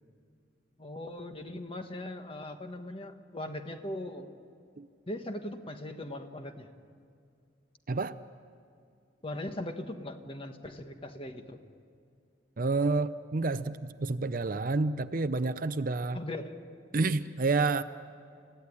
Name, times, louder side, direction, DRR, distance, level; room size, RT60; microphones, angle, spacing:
voice 1, 0.8-4.3 5.1-6.7 9.2-11.6 16.1-16.6, left 1 dB, 30° left, 6 dB, 1.4 m, -39 dB
voice 2, 7.9-8.2 12.6-16.2 16.9-17.8, right 3 dB, 45° right, 13 dB, 0.6 m, -29 dB
30.0 x 16.0 x 9.8 m, 2.3 s
head